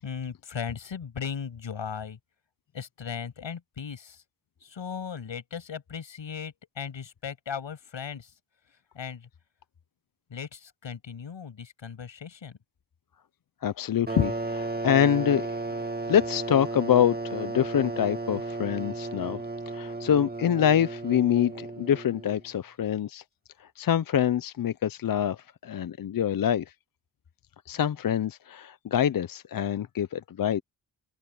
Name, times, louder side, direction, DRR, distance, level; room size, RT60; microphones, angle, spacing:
voice 1, 0.0-2.2 2.7-4.2 4.6-8.3 8.9-9.3 10.3-12.6, left 7 dB, 70° left, 7.1 m, -37 dB
voice 2, 13.6-19.4 19.7-23.2 23.6-26.6 27.7-30.6, left 9 dB, 50° left, 0.6 m, -25 dB
sound 1, 14.1-22.4, right 2 dB, 20° right, 2.1 m, -34 dB
open air
wide cardioid pair, 105°, 46 cm